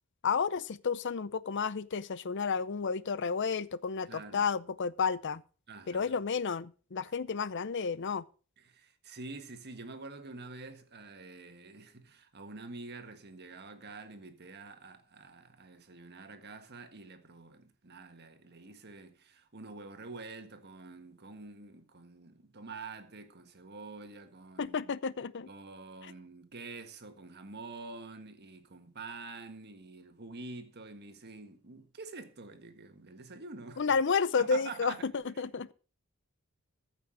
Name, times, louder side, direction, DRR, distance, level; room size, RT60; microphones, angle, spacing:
voice 1, 0.2-5.4 5.9-8.2 24.6-25.5 33.8-35.7, left 5 dB, 55° left, 0.6 m, -31 dB
voice 2, 4.1-4.5 5.7-6.2 7.0-7.1 8.6-24.9 25.5-33.9 34.4-35.1 35.3-35.4, right 3 dB, 50° right, 1.6 m, -47 dB
14.5 x 6.1 x 6.3 m
head